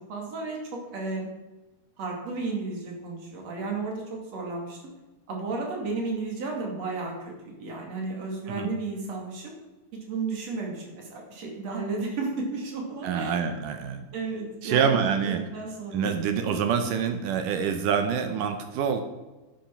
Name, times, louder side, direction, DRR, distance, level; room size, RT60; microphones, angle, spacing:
voice 1, 0.1-1.3 2.0-4.8 5.3-9.5 10.0-13.4 14.1-16.2, right 3 dB, 45° right, 0 dB, 3.2 m, -33 dB
voice 2, 13.0-14.1 14.6-15.4 15.9-19.0, right 7 dB, 70° right, 8 dB, 2.1 m, -26 dB
10.5 x 8.8 x 5.9 m, 1.1 s
omnidirectional pair, 4.4 m